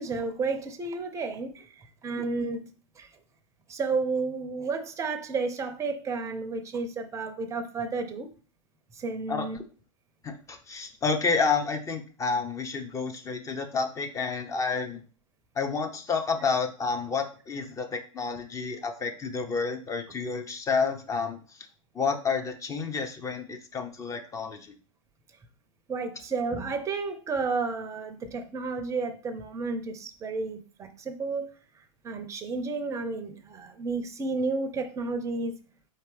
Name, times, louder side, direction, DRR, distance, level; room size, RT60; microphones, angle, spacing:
voice 1, 0.0-1.7 2.0-2.6 3.0-3.1 3.7-8.3 9.0-9.6 25.9-31.5 32.0-35.5, right 4 dB, 15° right, 0.6 m, -31 dB
voice 2, 10.2-15.0 15.6-21.4 21.9-24.7, left 4 dB, 20° left, 0.7 m, -30 dB
4.4 x 3.4 x 3.3 m
hypercardioid pair, 105°, 17 cm